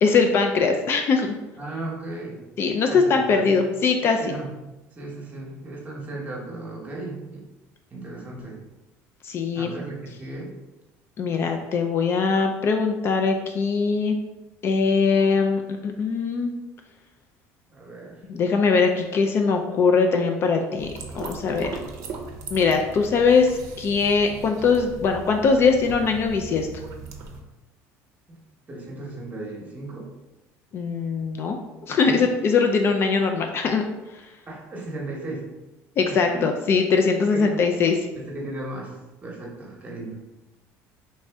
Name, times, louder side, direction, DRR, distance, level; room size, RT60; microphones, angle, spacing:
voice 1, 0.0-1.3 2.6-4.4 9.2-9.7 11.2-14.2 14.6-16.5 18.3-21.7 22.5-26.8 30.7-31.6 31.9-33.8 36.0-38.0, left 5 dB, 40° left, 4 dB, 0.3 m, -21 dB
voice 2, 1.6-2.4 2.9-3.5 4.2-4.5 5.0-7.4 7.9-8.6 9.5-10.5 17.7-18.2 28.7-30.1 32.0-32.3 34.5-35.5 36.1-36.5 37.3-37.5 38.1-40.2, right 2 dB, 25° right, -1 dB, 0.9 m, -35 dB
sound 1, 20.8-27.4, right 4 dB, 60° right, 0.6 m, -39 dB
3.2 x 2.6 x 3.3 m, 1.0 s
cardioid pair, 125°, 6 cm